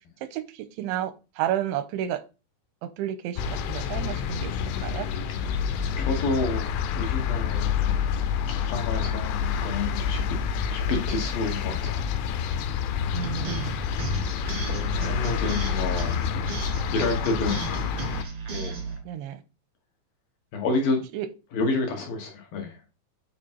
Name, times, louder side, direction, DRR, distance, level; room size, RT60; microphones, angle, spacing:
voice 1, 0.8-2.2 2.8-4.5 4.8-5.1 13.1-13.7 19.1-19.4 21.1-21.3, right 11 dB, 85° right, 12 dB, 3.0 m, -31 dB
sound 1, 3.4-18.2, left 7 dB, 90° left, 3.3 m, -28 dB
voice 2, 5.3-5.7 6.0-8.0 8.5-10.2 10.7-12.1 13.1-13.4 14.5-16.3 16.9-17.7 18.5-18.9 20.5-21.0 21.5-22.8, left 3 dB, 65° left, 3 dB, 2.6 m, -30 dB
sound 2, 13.2-19.0, right 4 dB, 60° right, 1.4 m, -34 dB
8.7 x 5.0 x 4.5 m, 0.30 s
omnidirectional pair, 5.3 m